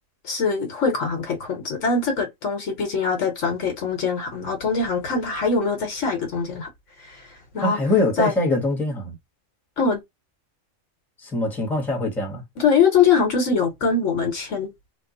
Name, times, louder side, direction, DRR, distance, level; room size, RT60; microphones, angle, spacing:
voice 1, 0.2-6.7 7.0-7.3 7.5-7.8 8.2-8.3 9.8-10.0 12.6-14.7, left 5 dB, 65° left, 1.3 m, -22 dB
voice 2, 7.6-9.2 11.2-12.4, left 2 dB, ahead, 0.9 m, -23 dB
3.0 x 2.0 x 3.8 m
omnidirectional pair, 1.4 m